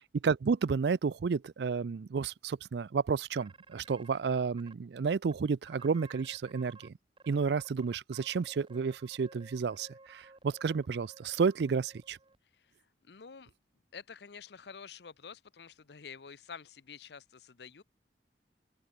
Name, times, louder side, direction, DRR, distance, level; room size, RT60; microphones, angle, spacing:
voice 1, 0.1-6.9 7.3-12.2, right 5 dB, 70° right, 0.4 m, -31 dB
sound 1, 3.4-4.7 5.2-5.3 5.7-6.9 7.2-12.4, right 3 dB, 30° right, 2.0 m, -56 dB
voice 2, 13.0-13.5 13.9-17.8, left 6 dB, 70° left, 0.7 m, -49 dB
open air
head